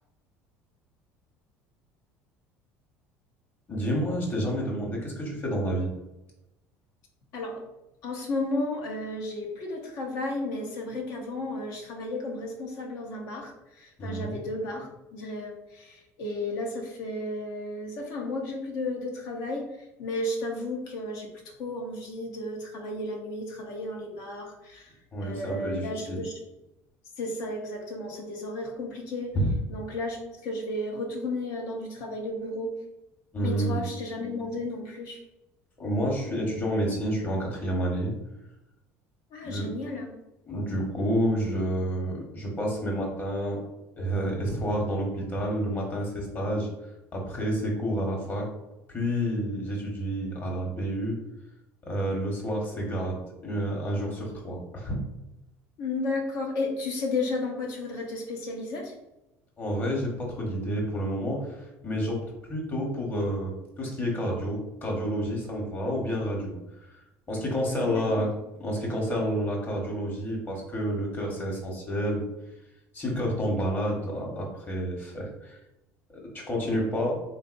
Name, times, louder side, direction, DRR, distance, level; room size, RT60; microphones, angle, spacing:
voice 1, 3.7-5.9 14.0-14.4 25.1-26.2 29.3-29.5 33.3-33.8 35.8-38.1 39.4-39.9 40.5-43.6 44.0-46.7 47.1-48.5 48.9-51.2 51.9-54.9 59.6-62.2 62.5-66.6 67.3-68.3 68.6-72.2 72.9-75.6 76.2-77.1, equal, 30° left, -1 dB, 1.1 m, -29 dB
voice 2, 8.0-19.7 20.0-21.3 21.6-24.9 25.2-26.3 27.2-29.4 29.7-32.7 33.4-35.2 39.3-40.1 55.8-58.9 67.7-68.3, left 2 dB, 70° left, 1 dB, 0.8 m, -33 dB
3.8 x 2.5 x 2.5 m, 0.94 s
supercardioid pair, 100°, 6 cm